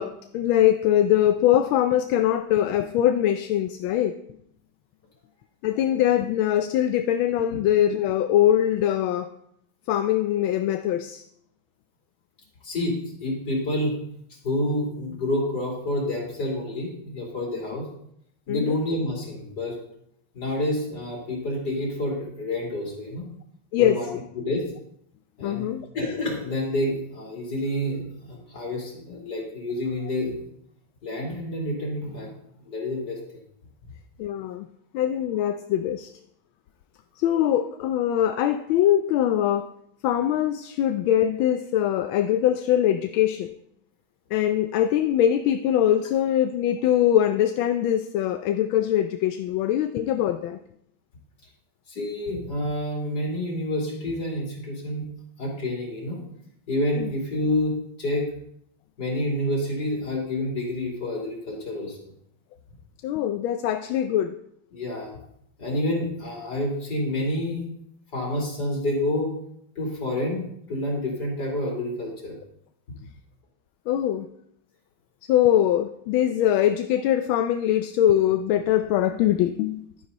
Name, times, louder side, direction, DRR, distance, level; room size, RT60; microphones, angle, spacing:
voice 1, 0.0-4.2 5.6-9.3 9.9-11.2 18.5-18.8 23.7-24.0 25.4-25.9 34.2-34.7 34.9-36.1 37.2-39.7 40.0-43.5 44.3-50.6 57.0-57.1 63.0-64.3 73.9-74.3 75.3-80.1, left 11 dB, 85° left, 8 dB, 1.4 m, -22 dB
voice 2, 12.6-14.0 14.4-17.9 18.5-19.8 20.3-23.3 23.8-24.6 25.4-30.4 31.0-32.3 32.6-33.2 51.9-55.1 55.4-56.2 56.7-58.3 59.0-62.1 64.7-65.1 65.6-67.6 68.1-69.3 69.8-72.3, left 1 dB, 55° left, -2 dB, 3.8 m, -28 dB
12.0 x 9.8 x 4.0 m, 0.73 s
omnidirectional pair, 2.2 m